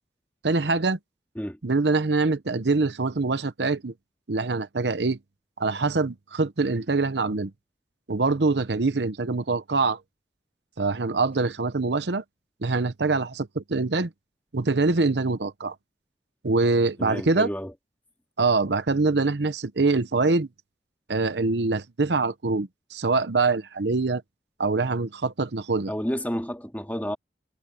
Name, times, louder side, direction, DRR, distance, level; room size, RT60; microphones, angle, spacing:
voice 1, 0.4-1.0 1.6-3.9 4.3-5.2 5.6-7.5 8.1-10.0 10.8-12.2 12.6-14.1 14.5-15.7 16.4-17.5 18.4-20.5 21.1-24.2 24.6-25.9, right 3 dB, 80° right, 0.9 m, -24 dB
voice 2, 17.0-17.7 25.9-27.2, equal, 10° left, 2.4 m, -30 dB
head